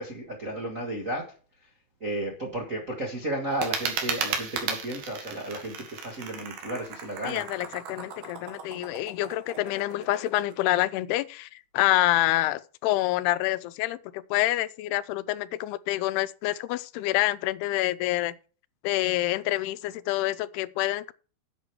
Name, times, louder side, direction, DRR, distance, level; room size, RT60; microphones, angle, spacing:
voice 1, 0.0-1.3 2.0-7.4, right 1 dB, 45° right, 0.9 m, -33 dB
sound 1, 3.5-10.5, right 6 dB, 70° right, 3.6 m, -35 dB
voice 2, 7.2-18.4 18.8-21.1, left 16 dB, 90° left, 2.7 m, -27 dB
10.5 x 8.2 x 4.6 m
omnidirectional pair, 4.5 m